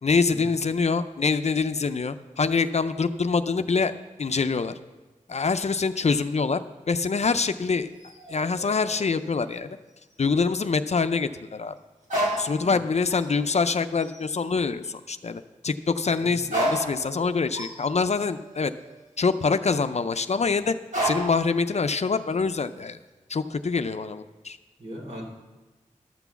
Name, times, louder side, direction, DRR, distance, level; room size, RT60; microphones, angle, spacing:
voice 1, 0.0-3.9 4.2-4.7 5.3-6.6 6.9-7.9 8.3-9.8 10.2-11.8 12.4-18.7 19.2-20.7 21.0-23.0 23.3-24.6, left 4 dB, 55° left, 10 dB, 0.5 m, -25 dB
sound 1, 7.8-9.8 10.1-10.2 12.0-12.8 13.1-13.6 14.0-14.3 16.1-16.2 16.4-19.8 20.9-21.5 21.8-22.5, right 1 dB, 70° right, 3.2 m, -32 dB
voice 2, 24.8-25.3, equal, 55° right, -1 dB, 2.9 m, -39 dB
12.0 x 6.0 x 7.0 m, 1.2 s
wide cardioid pair, 55°, 13 cm